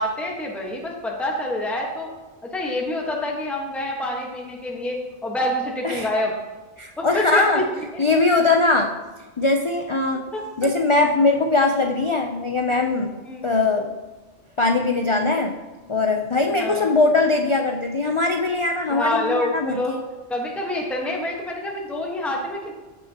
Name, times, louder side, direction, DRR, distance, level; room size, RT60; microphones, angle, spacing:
voice 1, 0.0-2.1 2.4-6.3 7.0-7.6 7.9-8.0 10.3-10.7 12.7-12.8 13.2-13.4 16.6-16.9 18.9-19.9 20.3-22.7, left 1 dB, ahead, -1 dB, 1.2 m, -27 dB
voice 2, 6.8-7.6 8.0-8.9 9.4-10.3 10.6-13.2 13.4-13.9 14.6-15.5 15.9-20.0, left 3 dB, 40° left, 3 dB, 0.4 m, -21 dB
15.0 x 6.3 x 2.9 m, 1.2 s
omnidirectional pair, 1.2 m